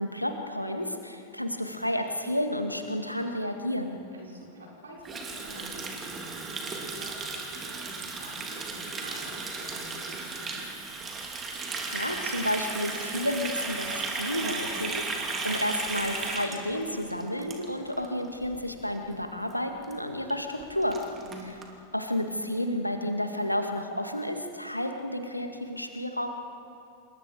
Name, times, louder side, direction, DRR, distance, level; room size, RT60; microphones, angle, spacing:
voice 1, 0.0-4.0 11.6-21.0 21.9-26.3, left 1 dB, 90° left, 5 dB, 2.0 m, -31 dB
voice 2, 4.1-10.7 21.2-21.5, right 1 dB, 70° right, -2 dB, 4.6 m, -48 dB
Water tap faucet, 5.0-18.1 18.3-18.6 18.9-19.2 19.5-19.6 19.8-19.9 20.3-20.4 20.6-21.7, right 3 dB, 20° right, 3.1 m, -35 dB
28.0 x 24.0 x 5.0 m, 2.6 s
figure-of-eight pair, 90°, 0 cm